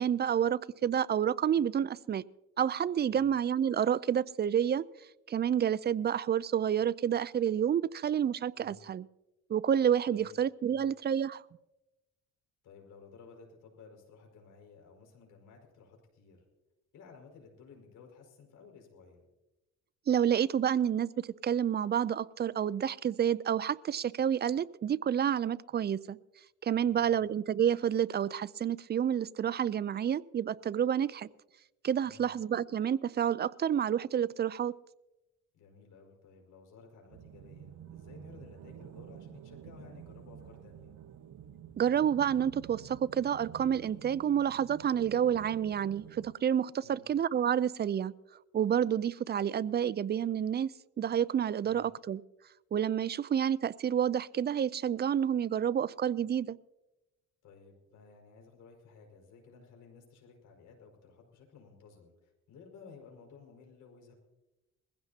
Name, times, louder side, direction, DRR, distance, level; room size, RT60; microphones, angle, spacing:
voice 1, 0.0-2.2 2.6-4.8 5.3-9.1 9.5-11.4 20.1-26.2 26.6-31.3 31.8-34.7 41.8-48.1 48.5-52.2 52.7-56.6, right 9 dB, 35° right, 19 dB, 0.4 m, -29 dB
voice 2, 12.6-16.4 16.9-19.3 26.8-27.2 32.0-32.3 35.5-40.9 46.8-47.1 51.6-51.9 57.4-64.1, left 5 dB, 80° left, 1 dB, 5.3 m, -55 dB
sound 1, 37.1-46.3, right 10 dB, 65° right, 0.8 m, -49 dB
21.0 x 15.5 x 2.8 m, 1.0 s
cardioid pair, 90°, 30 cm